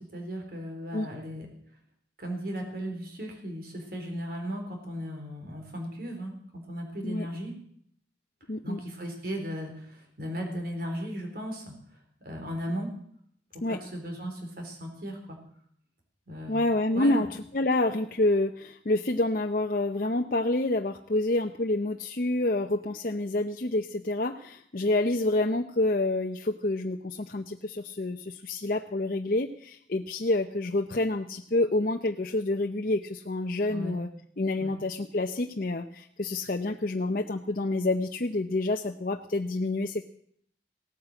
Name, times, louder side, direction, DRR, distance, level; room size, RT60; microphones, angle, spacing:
voice 1, 0.1-1.5 2.2-6.4 6.7-7.5 8.6-11.7 12.2-12.9 13.5-15.4 16.3-16.7 16.9-17.3 33.7-34.0 34.6-34.7, equal, 55° right, 3 dB, 3.9 m, -36 dB
voice 2, 8.5-8.8 13.6-13.8 16.5-17.3 17.5-34.1 34.4-40.0, left 2 dB, 50° left, 4 dB, 0.7 m, -28 dB
17.0 x 9.4 x 7.7 m, 0.64 s
head